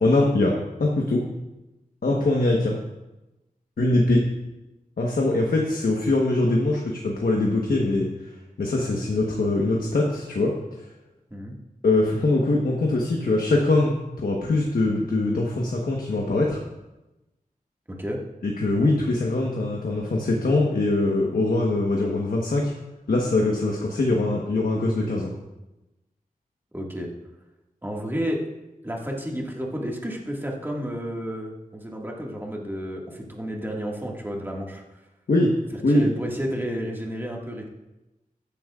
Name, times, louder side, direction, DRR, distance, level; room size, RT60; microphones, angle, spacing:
voice 1, 0.0-1.3 2.0-2.8 3.8-4.3 5.0-8.1 8.6-10.5 11.8-16.6 18.4-22.7 23.1-25.3 35.3-35.6 35.8-36.1, left 2 dB, 75° left, -1 dB, 1.2 m, -22 dB
voice 2, 17.9-18.2 26.7-27.1 27.8-28.4 28.8-34.8 35.7-37.7, equal, 15° right, -1 dB, 1.9 m, -31 dB
15.0 x 10.5 x 2.5 m, 1.0 s
wide cardioid pair, 80°, 15 cm